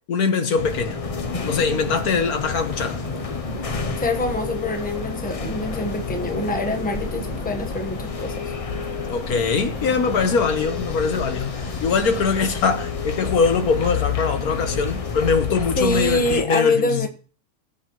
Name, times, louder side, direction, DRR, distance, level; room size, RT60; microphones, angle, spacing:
voice 1, 0.1-1.0 1.5-3.0 9.1-17.1, left 5 dB, 70° left, 1.6 m, -22 dB
sound 1, 0.6-16.5, left 5 dB, 40° left, 0.5 m, -30 dB
sound 2, 1.2-15.5, left 3 dB, 25° left, 1.4 m, -38 dB
voice 2, 4.0-8.4 15.8-17.1, left 2 dB, 5° left, 1.0 m, -25 dB
18.0 x 8.1 x 3.1 m
omnidirectional pair, 1.6 m